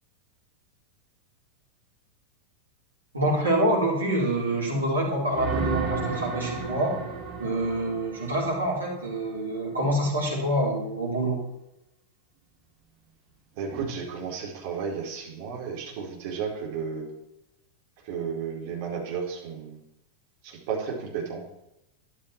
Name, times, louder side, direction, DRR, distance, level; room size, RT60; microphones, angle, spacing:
voice 1, 3.1-7.0 7.4-11.4, right 1 dB, 80° right, -3 dB, 4.7 m, -26 dB
sound 1, 5.3-9.1 13.7-13.8, right 5 dB, 30° right, 3.3 m, -32 dB
voice 2, 13.6-17.1 18.0-19.8 20.4-21.4, right 6 dB, 50° right, -1 dB, 4.4 m, -33 dB
13.0 x 11.5 x 4.6 m, 0.86 s
figure-of-eight pair, 90°, 0 cm